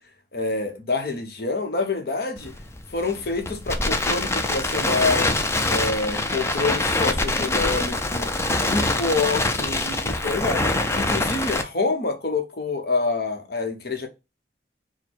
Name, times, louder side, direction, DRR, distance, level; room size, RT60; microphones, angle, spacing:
voice 1, 0.3-2.5 2.9-5.3 5.7-8.3 8.7-10.6 10.9-14.1, left 3 dB, 60° left, 0.9 m, -27 dB
Crackle, 2.4-11.6, left 2 dB, 15° left, 0.4 m, -24 dB
4.3 x 2.2 x 4.5 m
head